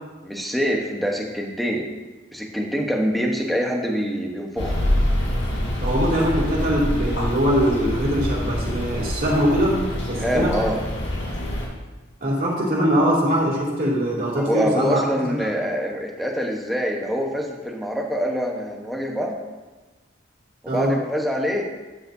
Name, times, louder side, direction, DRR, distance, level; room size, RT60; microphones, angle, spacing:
voice 1, 0.2-1.9 2.3-4.8 10.2-10.8 14.3-19.4 20.6-21.7, equal, ahead, 0 dB, 1.0 m, -25 dB
sound 1, 4.6-11.7, left 1 dB, 80° left, 3.5 m, -25 dB
voice 2, 5.8-9.8 10.1-10.6 12.2-15.5 20.6-20.9, equal, 45° right, -4 dB, 2.7 m, -22 dB
12.5 x 9.2 x 2.7 m, 1.2 s
head